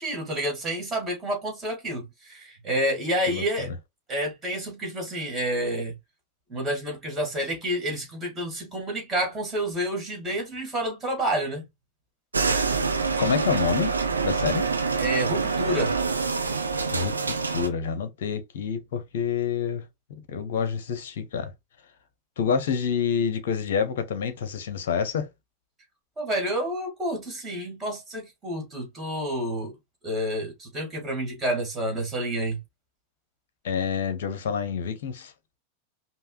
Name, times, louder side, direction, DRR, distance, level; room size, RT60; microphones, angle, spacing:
voice 1, 0.0-3.7 4.1-5.9 6.5-11.6 15.0-15.9 26.2-29.7 30.0-32.6, right 1 dB, 20° right, 1.8 m, -29 dB
voice 2, 3.3-3.7 12.6-12.8 13.2-13.9 14.2-14.7 16.9-19.9 20.3-21.5 22.4-25.3 33.6-35.3, left 7 dB, 55° left, 0.6 m, -28 dB
sound 1, 12.3-17.7, right 4 dB, 75° right, 0.5 m, -26 dB
5.4 x 2.0 x 2.3 m
figure-of-eight pair, 90°, 0 cm